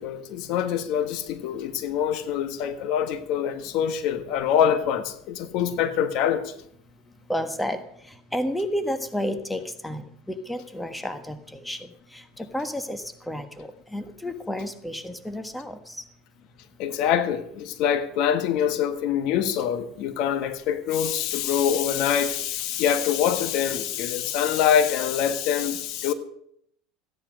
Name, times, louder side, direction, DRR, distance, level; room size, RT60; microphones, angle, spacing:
voice 1, 0.0-6.5 16.8-26.1, left 9 dB, 60° left, 1.4 m, -25 dB
voice 2, 7.3-7.8 8.3-11.8 12.4-16.0, equal, 5° left, 1.4 m, -31 dB
15.5 x 10.5 x 6.4 m
supercardioid pair, 115°, 0 cm